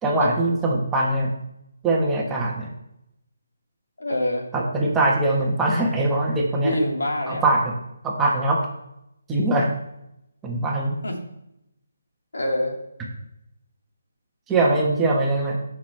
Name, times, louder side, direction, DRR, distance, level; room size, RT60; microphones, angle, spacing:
voice 1, 0.0-1.3 1.8-2.7 4.5-6.8 7.3-7.7 8.0-8.6 9.3-9.7 10.4-11.0 14.5-15.6, right 2 dB, 10° right, -2 dB, 1.3 m, -22 dB
voice 2, 4.0-4.5 6.6-7.5 11.0-11.2 12.3-12.7 14.7-14.8, left 1 dB, 85° left, 1 dB, 2.2 m, -25 dB
14.5 x 6.0 x 3.3 m, 0.82 s
hypercardioid pair, 165°, 0 cm